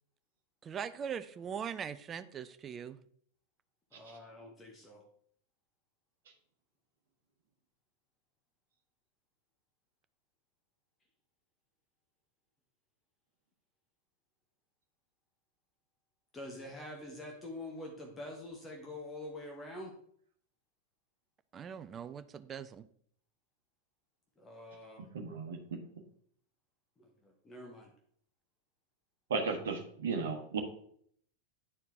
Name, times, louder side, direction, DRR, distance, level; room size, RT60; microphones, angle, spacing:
voice 1, 0.6-3.0 21.5-22.9, right 7 dB, 25° right, 13 dB, 0.4 m, -41 dB
voice 2, 3.9-5.0 16.3-19.9 24.4-25.0 27.0-27.9, left 1 dB, 15° left, 1 dB, 1.2 m, -46 dB
voice 3, 25.1-25.6 29.3-30.6, right 4 dB, 60° right, 3 dB, 1.2 m, -35 dB
9.8 x 4.5 x 3.5 m, 0.64 s
figure-of-eight pair, 90°, 0 cm